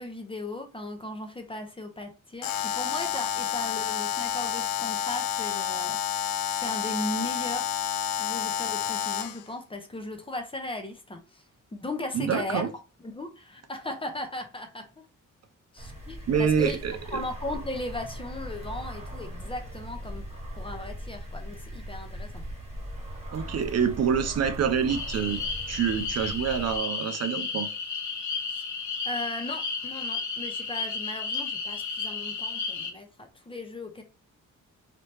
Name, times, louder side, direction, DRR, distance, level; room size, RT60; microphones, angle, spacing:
voice 1, 0.0-7.6 8.2-11.4 11.7-12.6 13.0-14.9 15.7-16.8 17.1-20.3 20.6-22.4 28.5-28.6 29.0-34.0, left 1 dB, 15° left, 0.6 m, -37 dB
Alarm, 2.4-9.4, left 9 dB, 85° left, 0.5 m, -29 dB
voice 2, 12.1-12.7 16.3-17.2 23.3-25.4 25.7-27.7, right 7 dB, 50° right, 0.4 m, -26 dB
sound 1, 15.8-26.8, equal, 20° right, 1.4 m, -39 dB
sound 2, 24.9-32.9, left 4 dB, 65° left, 0.9 m, -33 dB
3.1 x 2.9 x 3.1 m
wide cardioid pair, 125°, 32 cm